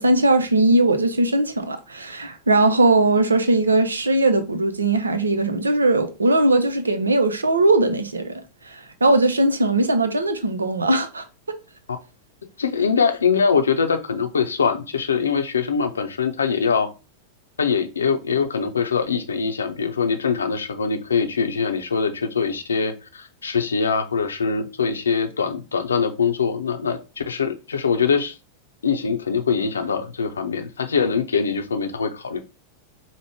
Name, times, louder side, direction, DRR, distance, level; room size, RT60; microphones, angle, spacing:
voice 1, 0.0-8.3 8.7-11.2, right 2 dB, 75° right, 0.6 m, -19 dB
voice 2, 12.6-16.9 17.6-28.3 28.8-32.4, left 5 dB, 70° left, 0.6 m, -23 dB
4.7 x 2.1 x 3.4 m
figure-of-eight pair, 90°, 0 cm